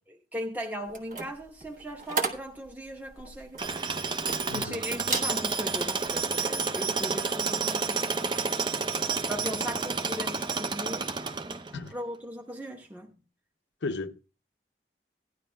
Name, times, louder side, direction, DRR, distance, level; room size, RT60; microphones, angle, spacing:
voice 1, 0.1-3.7 4.5-8.7 9.3-11.1 11.4-11.6 11.9-13.2, equal, 10° right, 0.9 m, -38 dB
sound 1, 0.9-4.7 5.0-5.4 5.8-6.1, right 4 dB, 45° right, 1.2 m, -34 dB
Tools, 3.6-11.9, right 4 dB, 25° right, 0.5 m, -30 dB
voice 2, 4.5-4.8 11.7-12.0 13.8-14.2, left 3 dB, 90° left, 0.6 m, -34 dB
16.5 x 11.0 x 2.2 m
head